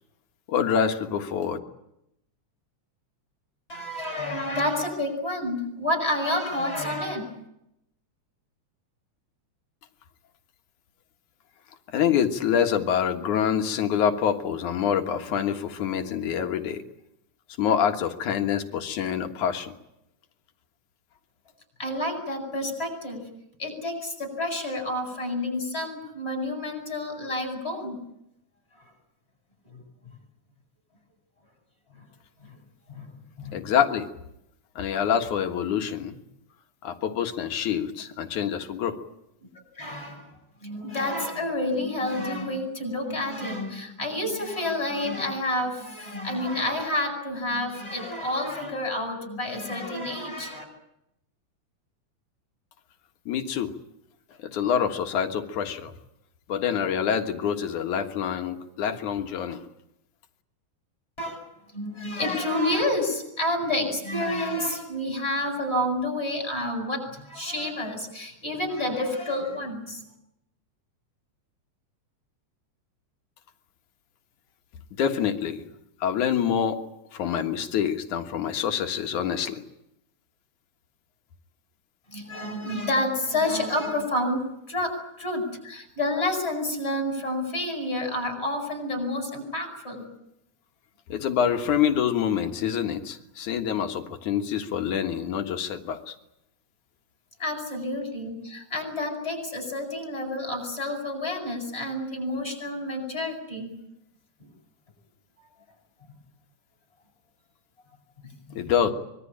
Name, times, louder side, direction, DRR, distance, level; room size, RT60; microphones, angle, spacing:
voice 1, 0.5-1.6 11.9-16.8 17.6-19.7 33.5-34.1 34.8-36.2 36.8-39.0 53.3-53.7 54.4-55.9 56.5-59.6 75.0-75.7 76.0-76.8 77.1-79.6 91.1-96.2 108.5-108.9, left 8 dB, 80° left, 5 dB, 3.1 m, -26 dB
voice 2, 3.7-7.3 21.8-23.2 23.6-28.0 29.6-29.8 31.9-32.0 32.4-32.5 32.9-33.6 34.9-35.0 39.8-40.3 40.6-50.6 61.2-61.5 61.7-70.0 82.1-84.4 84.7-84.9 85.2-90.0 97.4-103.7 108.2-108.6, left 1 dB, 20° left, 4 dB, 8.3 m, -29 dB
25.0 x 22.5 x 8.8 m, 0.82 s
omnidirectional pair, 3.4 m